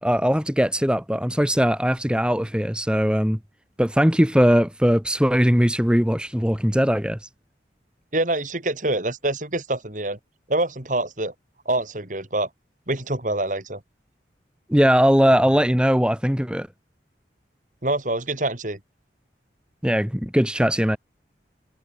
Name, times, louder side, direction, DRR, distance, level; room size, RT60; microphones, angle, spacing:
voice 1, 0.0-3.4 3.8-7.3 14.7-16.7 19.8-21.0, equal, 5° right, 2.9 m, -20 dB
voice 2, 8.1-10.2 10.5-11.3 11.7-12.5 12.9-13.8 17.8-18.8, right 2 dB, 45° right, 3.7 m, -25 dB
head